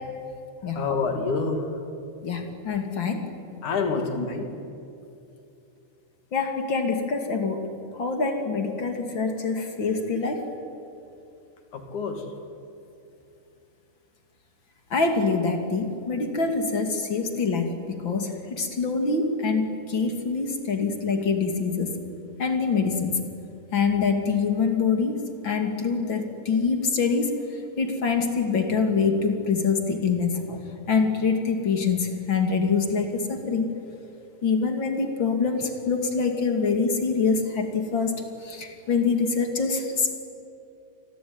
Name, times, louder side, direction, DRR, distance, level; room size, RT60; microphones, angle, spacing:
voice 1, 0.8-1.7 3.6-4.5 11.7-12.2, left 4 dB, 75° left, 5 dB, 4.1 m, -27 dB
voice 2, 2.2-3.3 4.2-4.3 6.3-10.4 14.9-22.0 22.4-23.3 23.7-25.2 25.4-27.3 27.8-30.6 30.9-33.7 34.4-38.1 38.4-40.2, left 5 dB, 40° left, 5 dB, 3.0 m, -25 dB
28.5 x 21.5 x 9.6 m, 2.6 s
omnidirectional pair, 3.5 m